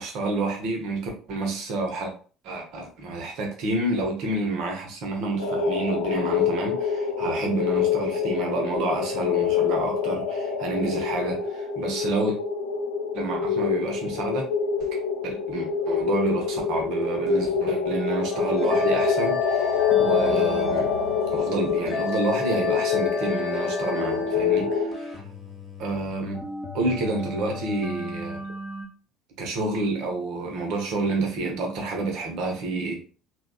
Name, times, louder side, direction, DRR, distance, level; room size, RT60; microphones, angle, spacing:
voice 1, 0.0-2.1 2.4-12.4 13.1-14.5 15.2-20.9 21.3-25.2 25.8-26.4 26.7-28.5 29.4-33.0, right 2 dB, 55° right, 0.9 m, -29 dB
sound 1, 5.4-24.9, left 6 dB, 70° left, 0.5 m, -26 dB
sound 2, 18.3-28.9, left 3 dB, 30° left, 1.1 m, -32 dB
3.4 x 2.3 x 2.3 m
figure-of-eight pair, 60°, 0 cm